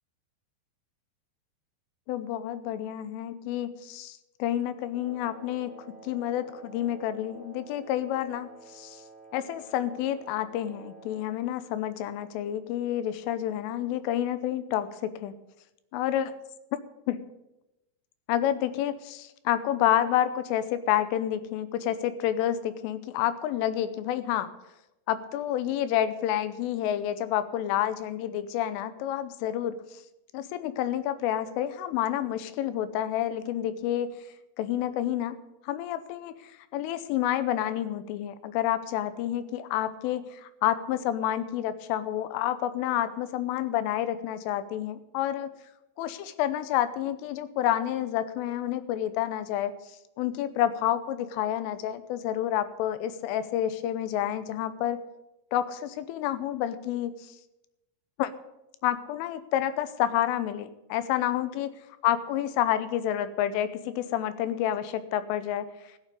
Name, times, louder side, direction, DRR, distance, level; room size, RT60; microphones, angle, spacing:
voice 1, 2.1-5.7 6.0-9.0 9.3-15.3 15.9-16.3 17.1-17.2 18.3-24.5 25.1-29.8 30.3-34.2 34.6-35.4 35.6-45.5 46.0-49.7 50.2-55.0 55.5-57.4 58.2-58.3 58.8-61.7 62.0-65.9, left 11 dB, 85° left, 13 dB, 3.4 m, -29 dB
Wind instrument woodwind instrument, 4.9-11.4, right 3 dB, 15° left, 3.0 m, -50 dB
14.5 x 7.5 x 8.1 m, 0.93 s
omnidirectional pair, 5.6 m